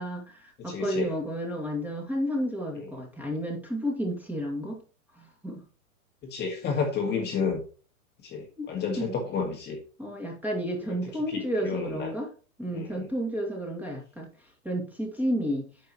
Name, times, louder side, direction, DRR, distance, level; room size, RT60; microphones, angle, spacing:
voice 1, 0.0-4.8 5.1-5.6 8.6-8.7 9.0-9.2 10.0-12.3 12.6-14.3 14.6-15.7, equal, 5° right, 0 dB, 2.2 m, -31 dB
voice 2, 0.7-1.1 6.2-7.6 8.2-9.8 11.3-12.1 12.7-13.1, left 5 dB, 25° left, 1 dB, 1.9 m, -31 dB
9.5 x 6.6 x 3.1 m, 0.36 s
hypercardioid pair, 125°, 43 cm